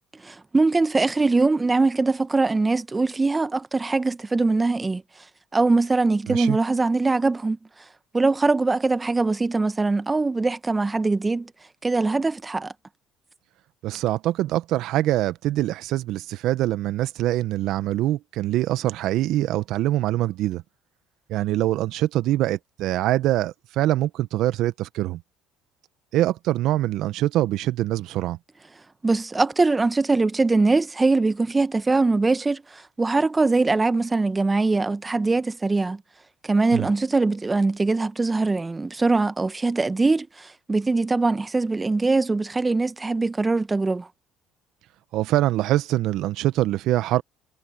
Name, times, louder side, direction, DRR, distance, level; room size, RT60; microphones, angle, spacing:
voice 1, 0.2-5.0 5.5-7.6 8.1-11.5 11.8-12.7 29.0-36.0 36.4-44.1, right 3 dB, 20° right, 1.2 m, -22 dB
voice 2, 6.3-6.6 13.8-20.6 21.3-25.2 26.1-28.4 36.7-36.9 45.1-47.2, right 14 dB, 65° right, 1.3 m, -24 dB
hypercardioid pair, 65°, 0 cm